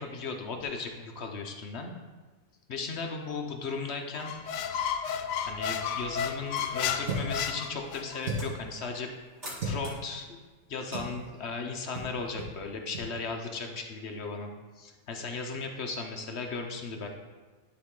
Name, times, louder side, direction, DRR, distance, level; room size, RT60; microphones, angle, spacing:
voice 1, 0.0-1.9 2.7-4.3 5.5-9.1 9.6-10.4 10.7-17.1, left 4 dB, 55° left, 3 dB, 0.9 m, -36 dB
Squeak, 4.2-8.2, left 8 dB, 85° left, 1.2 m, -32 dB
sound 1, 6.5-12.0, equal, 35° right, 2.3 m, -50 dB
sound 2, 7.0-7.4 8.2-8.6 9.6-9.8 10.9-11.2 11.9-12.1 12.4-12.5 12.9-13.1, right 1 dB, 55° right, 1.6 m, -34 dB
11.0 x 4.1 x 3.7 m, 1.4 s
omnidirectional pair, 1.7 m